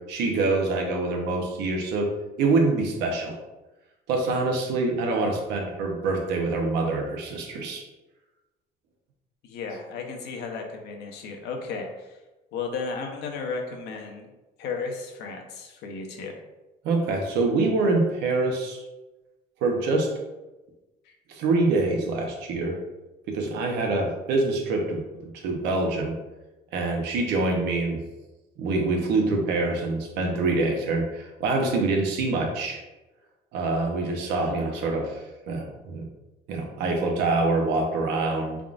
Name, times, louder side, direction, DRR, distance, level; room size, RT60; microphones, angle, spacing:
voice 1, 0.1-2.1 2.4-3.4 4.1-7.8 16.8-18.8 19.6-20.1 21.3-22.8 23.3-26.1 26.7-28.0 28.6-32.8 33.5-35.2 35.5-36.1 36.5-38.6, right 3 dB, 85° right, 2 dB, 0.8 m, -25 dB
voice 2, 9.4-12.2 12.5-14.3 14.6-16.3, left 4 dB, 80° left, 3 dB, 0.7 m, -34 dB
3.7 x 3.6 x 2.4 m, 1.1 s
cardioid pair, 110°, 17 cm